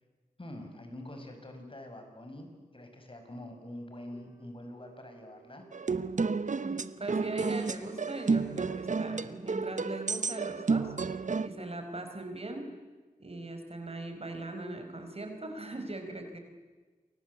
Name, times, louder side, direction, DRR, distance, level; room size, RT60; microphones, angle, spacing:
voice 1, 0.4-5.6, left 1 dB, 35° left, 5 dB, 6.4 m, -45 dB
sound 1, 4.1-4.5 4.8-6.3 6.6-8.1 8.4-9.9 10.2-11.1, right 5 dB, 20° right, 4.4 m, -59 dB
sound 2, 5.7-11.5, right 4 dB, 60° right, 1.0 m, -31 dB
voice 2, 6.6-12.7 13.2-16.4, right 2 dB, 45° right, 5 dB, 5.2 m, -40 dB
28.5 x 24.0 x 8.3 m, 1.3 s
wide cardioid pair, 70°, 15 cm